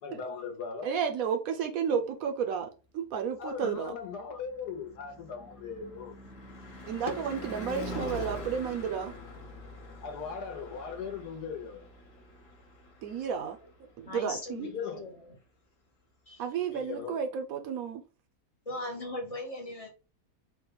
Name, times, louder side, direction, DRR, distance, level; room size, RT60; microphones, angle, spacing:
voice 1, 0.0-0.9 3.4-6.1 10.0-11.8 14.6-15.0 16.7-17.2, left 6 dB, 75° left, 1.4 m, -38 dB
voice 2, 0.8-3.9 6.9-9.1 13.0-13.6 14.0-14.7 16.4-18.0, right 7 dB, 70° right, 1.0 m, -32 dB
Car passing by / Truck / Engine, 3.8-14.0, left 1 dB, 60° left, 1.5 m, -44 dB
voice 3, 14.1-15.4 16.3-16.4 18.7-19.9, left 1 dB, 35° left, 0.6 m, -39 dB
4.1 x 2.2 x 3.8 m
omnidirectional pair, 1.7 m